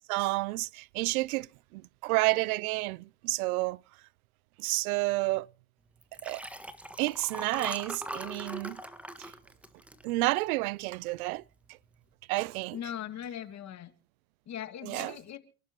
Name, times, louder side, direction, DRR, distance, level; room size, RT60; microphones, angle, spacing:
voice 1, 0.1-1.5 1.7-3.8 4.6-5.5 6.2-6.4 7.0-8.8 9.2-9.3 10.0-11.4 12.3-12.8 14.8-15.2, right 22 dB, 80° right, 0.6 m, -30 dB
Liquid, 6.0-10.7 11.1-11.4 11.7-11.8, right 1 dB, 5° right, 1.6 m, -41 dB
voice 2, 12.7-13.9 14.5-15.4, left 10 dB, 40° left, 2.1 m, -39 dB
29.0 x 11.5 x 3.0 m
supercardioid pair, 110°, 43 cm